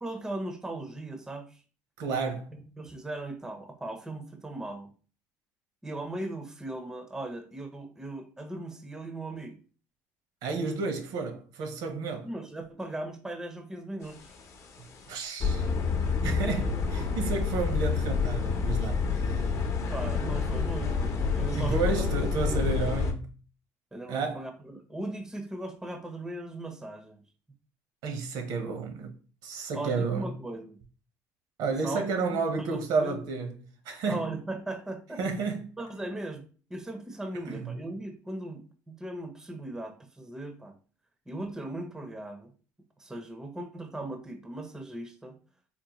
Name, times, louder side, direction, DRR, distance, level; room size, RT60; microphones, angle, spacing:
voice 1, 0.0-1.6 2.5-4.9 5.8-9.6 12.2-14.3 19.9-22.1 22.3-22.6 23.9-27.2 29.7-30.8 31.8-32.1 32.7-33.3 34.1-35.2 35.8-40.8 41.3-42.5 43.0-45.4, right 2 dB, 10° right, 0.4 m, -38 dB
voice 2, 2.0-2.5 10.4-12.3 15.1-15.7 16.2-19.4 21.6-23.3 24.1-24.5 28.0-29.1 29.4-30.3 31.6-33.6 33.8-34.3 35.2-35.8 37.5-37.7, right 4 dB, 70° right, 0.8 m, -31 dB
sound 1, 14.2-14.5 14.9-15.0 15.4-23.1, left 5 dB, 45° left, 0.6 m, -28 dB
3.8 x 2.1 x 2.9 m
cardioid pair, 105°, 7 cm